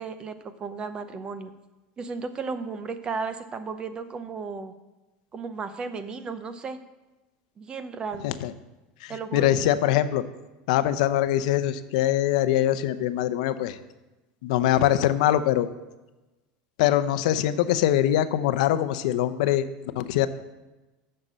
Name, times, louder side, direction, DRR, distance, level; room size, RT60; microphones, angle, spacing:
voice 1, 0.0-1.5 2.0-4.7 5.3-6.8 7.6-8.3 9.1-9.5, right 4 dB, 25° right, 11 dB, 0.6 m, -34 dB
voice 2, 9.0-10.2 10.7-13.8 14.4-15.7 16.8-20.3, left 12 dB, 80° left, 12 dB, 0.6 m, -23 dB
7.9 x 6.6 x 7.5 m, 1.1 s
supercardioid pair, 150°, 4 cm